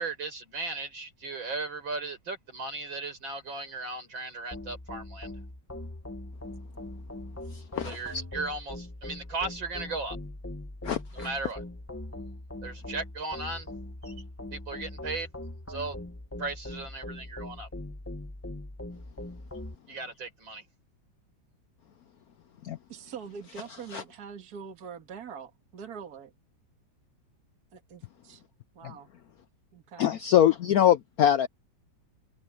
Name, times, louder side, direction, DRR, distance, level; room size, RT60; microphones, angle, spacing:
voice 1, 0.0-5.3 7.8-10.2 11.1-11.6 12.6-13.7 14.0-14.1 14.5-15.3 15.7-16.0 16.4-17.7 19.9-20.6, right 3 dB, 75° right, 6.5 m, -36 dB
sound 1, 4.5-19.7, left 1 dB, 15° left, 0.6 m, -41 dB
voice 2, 10.8-11.3 22.6-22.8 23.9-24.0 30.0-31.5, left 11 dB, 70° left, 0.9 m, -23 dB
voice 3, 22.9-26.3 27.7-28.4 28.8-29.1 29.7-30.1, right 6 dB, 55° right, 2.2 m, -43 dB
omnidirectional pair, 2.1 m